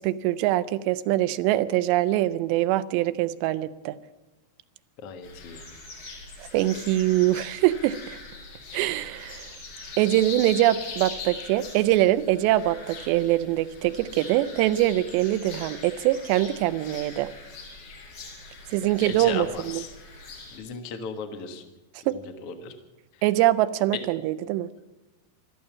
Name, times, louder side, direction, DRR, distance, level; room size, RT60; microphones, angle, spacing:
voice 1, 0.0-4.0 6.4-8.2 8.7-9.5 10.0-17.3 18.7-19.8 22.1-22.2 23.2-24.7, right 15 dB, 90° right, 14 dB, 2.9 m, -23 dB
voice 2, 5.0-5.7 19.0-19.9 20.5-21.6 22.1-22.7, left 5 dB, 60° left, 6 dB, 1.5 m, -36 dB
sound 1, 5.2-20.6, left 3 dB, 85° left, 5.5 m, -41 dB
14.0 x 13.0 x 7.2 m, 1.1 s
omnidirectional pair, 4.9 m